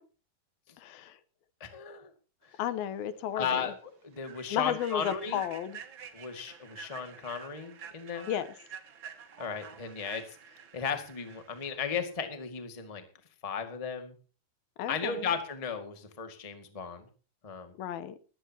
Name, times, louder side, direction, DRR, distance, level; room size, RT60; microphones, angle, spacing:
voice 1, 0.8-1.2 2.6-3.7 4.5-5.8 8.3-8.5 14.8-15.3 17.8-18.2, left 10 dB, 80° left, 2.8 m, -33 dB
voice 2, 1.6-2.1 2.5-2.6 3.3-3.7 4.0-5.4 6.1-8.3 9.4-10.4 10.7-13.0 13.4-14.1 14.9-17.1 17.4-17.7, left 6 dB, 15° left, 1.1 m, -35 dB
Human voice / Train, 2.9-3.0 3.4-3.6 4.1-11.7, right 7 dB, 60° right, 1.3 m, -49 dB
19.5 x 16.0 x 3.0 m
omnidirectional pair, 4.4 m